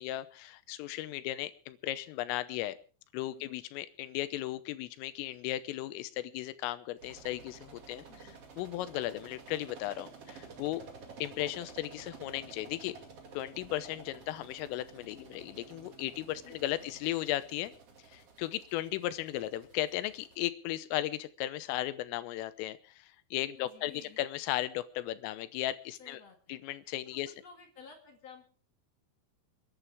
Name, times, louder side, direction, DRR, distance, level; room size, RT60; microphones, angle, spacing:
voice 1, 0.0-2.8 3.1-8.0 8.6-10.8 11.2-13.0 13.3-17.8 18.1-23.9 24.2-26.2 26.5-27.3, left 15 dB, 90° left, 13 dB, 3.5 m, -36 dB
sound 1, 7.0-20.4, right 5 dB, 45° right, 2.2 m, -52 dB
voice 2, 8.1-8.4 16.4-17.0 23.6-24.2 26.0-26.6 27.4-28.5, left 5 dB, 45° left, 3 dB, 2.4 m, -54 dB
29.0 x 11.0 x 3.5 m, 0.38 s
omnidirectional pair, 5.7 m